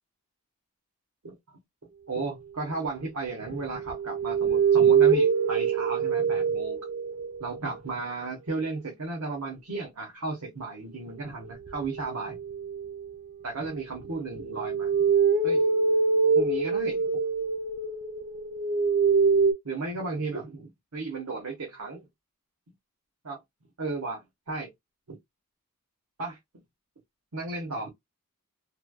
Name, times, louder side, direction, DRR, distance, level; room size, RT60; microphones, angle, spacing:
voice 1, 2.1-6.8 7.4-12.4 13.4-14.9 15.4-15.6 16.3-17.1 19.6-22.1 23.2-23.4 23.8-24.7 25.1-25.2 26.2-26.4 27.3-27.9, right 3 dB, 80° right, 1.0 m, -34 dB
sound 1, 3.5-7.6 11.7-13.1 14.0-19.5, right 5 dB, 40° right, 0.5 m, -24 dB
3.2 x 2.2 x 2.2 m
head